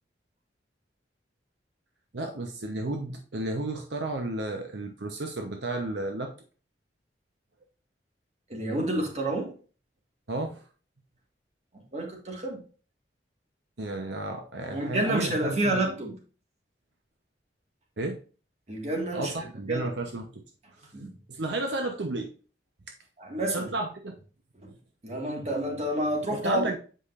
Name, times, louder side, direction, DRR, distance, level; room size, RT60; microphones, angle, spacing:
voice 1, 2.1-6.3 10.3-10.6 13.8-15.8 18.0-18.2 19.1-20.4 21.3-22.3 23.5-24.2 26.3-26.8, right 2 dB, 75° right, 0.9 m, -32 dB
voice 2, 8.5-9.5 11.9-12.6 14.7-16.2 18.7-19.3 19.7-19.9 20.9-21.1 23.2-23.7 24.6-24.7 25.0-26.6, right 1 dB, 40° right, 1.8 m, -29 dB
7.7 x 5.0 x 2.5 m
head